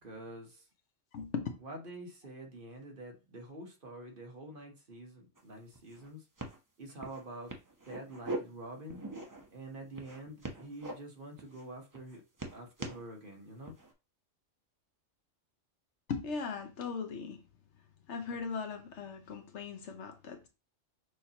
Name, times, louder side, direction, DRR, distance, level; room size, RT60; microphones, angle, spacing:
voice 1, 0.0-0.7 1.6-6.3 6.8-7.6 7.9-9.0 9.5-12.2 12.5-13.8, right 1 dB, 45° right, 1.2 m, -47 dB
voice 2, 1.1-1.5 16.1-17.4 18.1-20.5, left 5 dB, 65° left, 1.0 m, -38 dB
sound 1, 5.4-5.5 5.7-6.1 6.4-6.6 7.0-7.2 7.5-8.4 8.9-9.5 10.0-10.9 11.4-11.6 11.9-13.0 13.6-13.9, right 2 dB, 20° right, 0.6 m, -41 dB
6.4 x 2.8 x 2.8 m
omnidirectional pair, 1.3 m